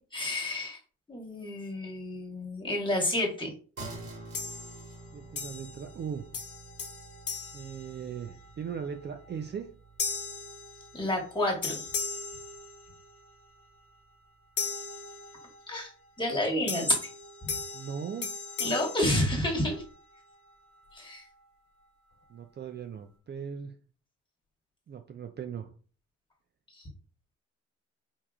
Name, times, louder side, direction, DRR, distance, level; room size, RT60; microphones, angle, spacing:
voice 1, 0.1-0.8 1.1-3.5 10.9-11.8 15.7-15.9 16.2-16.9 18.6-19.8 20.9-21.2, left 1 dB, 15° left, -1 dB, 1.5 m, -29 dB
sound 1, 3.8-13.5, right 2 dB, 55° right, 1.9 m, -49 dB
sound 2, 4.3-5.0 5.4-6.1 6.3-8.5 9.0-9.3 10.0-11.3 11.6-13.3 14.6-15.7 16.7-19.9, left 5 dB, 50° left, 1.1 m, -38 dB
voice 2, 5.1-6.2 7.5-9.7 16.7-16.9 17.7-18.3 22.3-23.7 24.9-25.7, right 7 dB, 35° right, 6 dB, 0.5 m, -38 dB
4.4 x 2.8 x 2.4 m, 0.39 s
cardioid pair, 90°, 30 cm